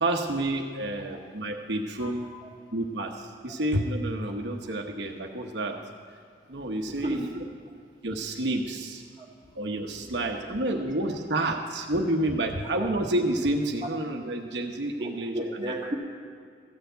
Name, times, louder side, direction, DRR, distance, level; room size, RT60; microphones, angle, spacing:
voice 1, 0.0-2.3 2.7-5.8 6.5-7.3 8.0-9.0 9.5-15.7, right 1 dB, 80° right, 2 dB, 1.0 m, -29 dB
voice 2, 2.0-2.5 6.9-7.4 9.2-9.3 9.5-9.6 10.6-10.8 15.0-16.0, right 1 dB, 25° right, -3 dB, 2.0 m, -34 dB
14.0 x 7.0 x 9.1 m, 2.2 s
head